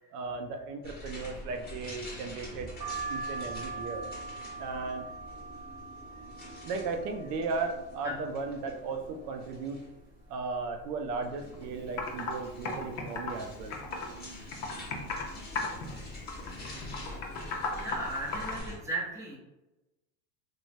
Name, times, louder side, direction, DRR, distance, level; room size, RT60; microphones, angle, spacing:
voice 1, 0.1-2.7 3.1-4.0 4.6-5.1 6.6-9.8 10.3-13.7, right 4 dB, 85° right, 5 dB, 0.6 m, -36 dB
sound 1, 0.8-18.8, left 1 dB, 20° left, 0.9 m, -46 dB
sound 2, 2.8-8.5 8.9-9.7 10.1-10.2 10.4-11.5 12.0-12.3 13.1-13.4 14.2-14.5 14.7-14.9, right 3 dB, 35° right, 1.1 m, -42 dB
Computer keyboard, 11.5-11.6 12.0-12.3 12.6-14.2 14.5-15.3 15.5-15.9 16.3-18.6, left 4 dB, 35° left, 0.5 m, -35 dB
voice 2, 17.7-19.4, right 1 dB, 5° right, -5 dB, 0.7 m, -36 dB
3.1 x 2.2 x 2.5 m, 1.0 s
supercardioid pair, 125°, 46 cm